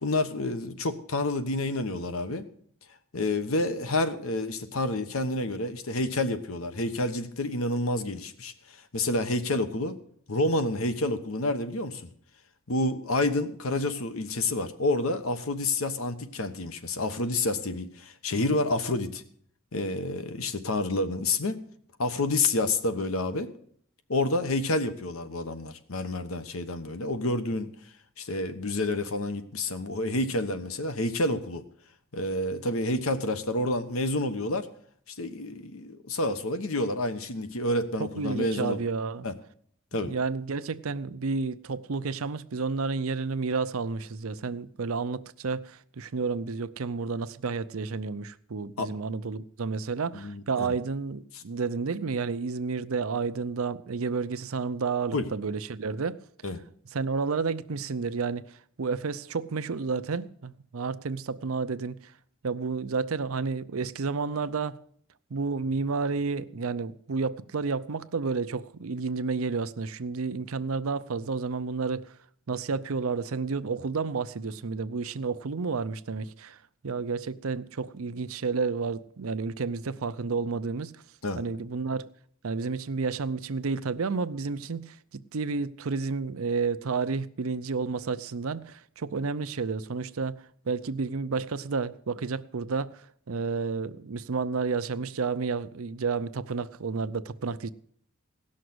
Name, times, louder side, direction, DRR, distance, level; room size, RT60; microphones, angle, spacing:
voice 1, 0.0-2.4 3.1-10.0 10.3-12.1 12.7-19.2 19.7-21.6 22.0-23.5 24.1-27.7 28.2-31.6 32.1-34.7 35.1-38.8 39.2-39.3 39.9-40.1 48.8-48.9 50.1-50.7 55.1-55.3 56.4-56.6 81.2-81.4, left 2 dB, 75° left, 1.1 m, -29 dB
voice 2, 38.0-39.3 39.9-56.2 56.9-62.1 62.4-64.8 65.3-72.1 72.5-76.6 76.8-80.9 81.4-82.1 82.4-97.7, right 4 dB, 75° right, 0.6 m, -31 dB
17.5 x 6.5 x 7.8 m
head